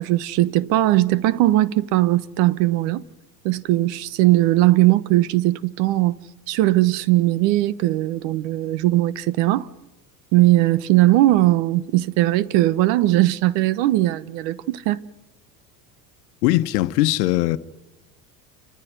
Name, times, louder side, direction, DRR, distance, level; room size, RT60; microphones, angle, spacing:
voice 1, 0.0-3.0 3.4-6.1 6.5-9.7 10.3-15.0, right 16 dB, 65° right, 1.2 m, -19 dB
voice 2, 16.4-17.6, left 17 dB, 75° left, 1.2 m, -20 dB
29.0 x 14.0 x 9.5 m
hypercardioid pair, 85°, 48 cm